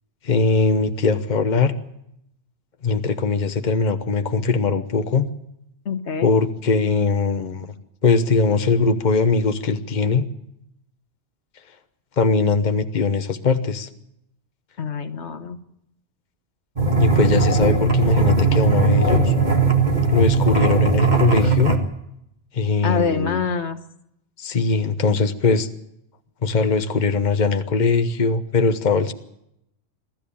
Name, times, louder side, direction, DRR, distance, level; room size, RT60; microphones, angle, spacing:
voice 1, 0.2-1.7 2.8-5.3 6.2-7.7 8.0-10.3 12.2-13.9 17.0-19.3 20.1-21.7 22.5-23.4 24.4-25.7 26.4-29.1, left 4 dB, 45° left, 9 dB, 1.2 m, -20 dB
voice 2, 5.8-6.4 14.8-15.6 22.8-23.8, left 5 dB, 85° left, 9 dB, 1.6 m, -25 dB
sound 1, 16.8-21.8, right 4 dB, 40° right, 2.1 m, -18 dB
22.5 x 13.5 x 8.7 m, 0.79 s
omnidirectional pair, 1.1 m